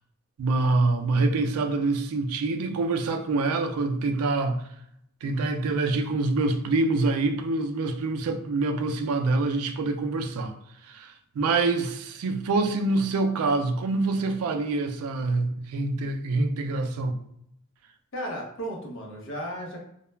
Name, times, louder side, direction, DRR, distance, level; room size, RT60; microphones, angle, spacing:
voice 1, 0.4-4.6 5.2-10.5 10.9-17.2, right 3 dB, 85° right, 0.4 m, -26 dB
voice 2, 18.1-19.8, equal, 60° left, 0.7 m, -34 dB
2.2 x 2.1 x 3.1 m
head